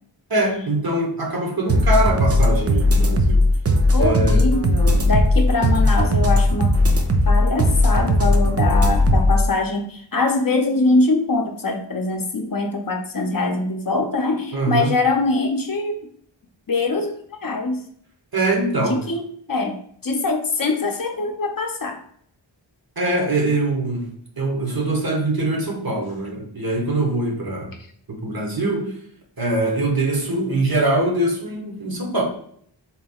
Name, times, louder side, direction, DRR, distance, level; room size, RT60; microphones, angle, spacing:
voice 1, 0.3-3.4 4.0-4.4 14.5-14.9 18.3-19.0 23.0-24.1 24.4-27.7 28.1-28.9 29.4-32.2, right 2 dB, 50° right, 0 dB, 1.0 m, -23 dB
sound 1, 1.7-9.4, left 1 dB, 35° right, 0.5 m, -17 dB
voice 2, 3.9-6.7 7.3-16.1 16.7-17.8 18.8-19.2 19.5-22.0, left 3 dB, 45° left, 3 dB, 0.6 m, -23 dB
4.2 x 3.4 x 2.3 m, 0.63 s
wide cardioid pair, 40°, 47 cm